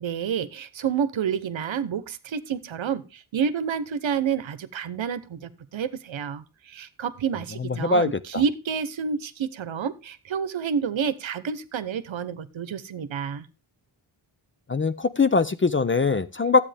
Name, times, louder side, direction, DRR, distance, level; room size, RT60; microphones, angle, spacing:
voice 1, 0.0-13.5, right 7 dB, 70° right, 14 dB, 1.0 m, -29 dB
voice 2, 7.6-8.4 14.7-16.6, left 4 dB, 25° left, 12 dB, 0.5 m, -22 dB
12.5 x 8.4 x 3.4 m, 0.30 s
wide cardioid pair, 100°, 48 cm